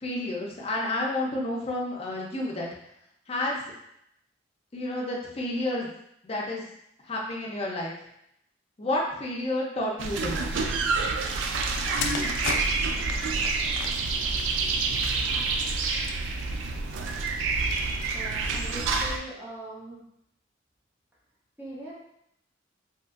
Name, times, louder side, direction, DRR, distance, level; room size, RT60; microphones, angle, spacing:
voice 1, 0.0-2.7 3.3-3.6 4.7-5.9 6.2-6.6 7.0-7.9 8.8-10.6, left 1 dB, 35° left, -2 dB, 0.5 m, -30 dB
sound 1, 10.0-19.2, right 4 dB, 85° right, 0.3 m, -28 dB
sound 2, 11.6-15.4 16.2-16.5, left 6 dB, 85° left, 0.3 m, -36 dB
voice 2, 18.1-20.1 21.6-22.0, right 1 dB, 10° right, -8 dB, 0.5 m, -41 dB
2.8 x 2.4 x 2.4 m, 0.76 s
head